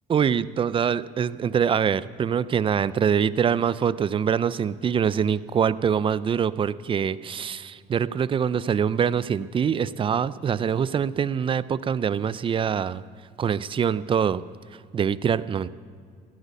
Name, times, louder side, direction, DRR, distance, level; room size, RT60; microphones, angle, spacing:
voice 1, 0.1-13.0 13.4-14.4 14.9-15.7, right 7 dB, 30° right, 17 dB, 0.4 m, -24 dB
16.0 x 8.3 x 8.2 m, 2.1 s
cardioid pair, 110°, 17 cm